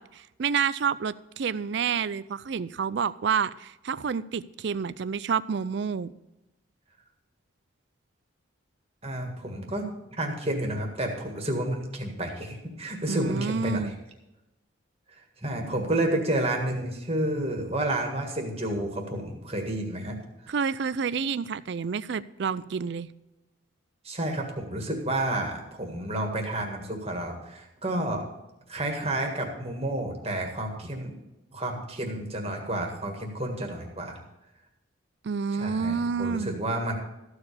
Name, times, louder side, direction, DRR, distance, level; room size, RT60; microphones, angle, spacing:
voice 1, 0.0-6.1 13.1-13.9 20.5-23.1 35.2-36.6, right 6 dB, 55° right, 17 dB, 0.4 m, -29 dB
voice 2, 9.0-9.9 10.2-13.9 15.1-20.2 24.0-28.2 28.7-31.1 31.5-34.2 35.5-36.9, right 1 dB, 30° right, 2 dB, 1.8 m, -30 dB
14.0 x 4.9 x 8.4 m, 0.96 s
head